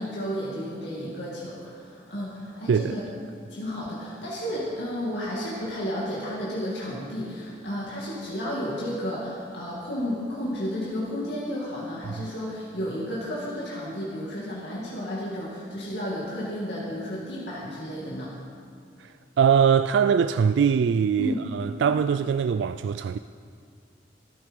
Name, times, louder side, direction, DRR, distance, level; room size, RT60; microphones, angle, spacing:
voice 1, 0.0-3.0 3.5-18.3 21.2-21.4, equal, 75° left, 2.4 m, -32 dB
voice 2, 19.0-23.2, right 7 dB, 80° right, 0.3 m, -22 dB
13.5 x 13.0 x 5.3 m
head